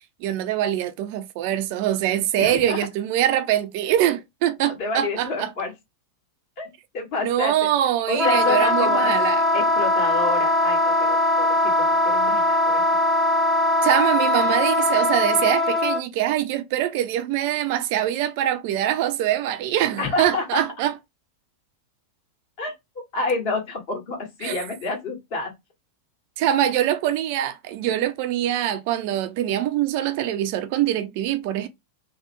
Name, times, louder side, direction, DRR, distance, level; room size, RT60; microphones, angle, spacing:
voice 1, 0.2-5.5 7.2-9.4 13.8-20.9 24.4-24.6 26.4-31.7, right 12 dB, 45° right, 0.4 m, -23 dB
voice 2, 2.4-2.9 4.8-5.7 6.6-7.7 8.1-9.1 9.5-12.8 20.0-20.6 22.6-22.7 23.1-25.5, left 3 dB, 45° left, 1.6 m, -28 dB
Wind instrument woodwind instrument, 8.1-16.0, left 1 dB, 20° left, 0.8 m, -20 dB
3.3 x 2.2 x 3.0 m
figure-of-eight pair, 90°, 0 cm